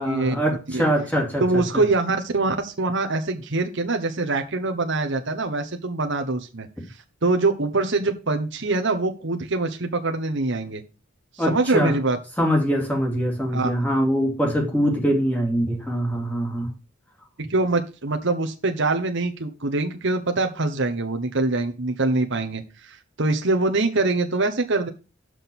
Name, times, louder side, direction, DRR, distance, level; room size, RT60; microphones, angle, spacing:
voice 1, 0.0-1.8 11.4-12.0 12.4-16.7, equal, 10° left, 0 dB, 2.8 m, -23 dB
voice 2, 1.4-6.7 7.2-10.8 11.5-12.2 13.5-13.7 17.5-24.9, right 3 dB, 60° right, 5 dB, 1.1 m, -24 dB
6.4 x 6.1 x 7.0 m, 0.31 s
head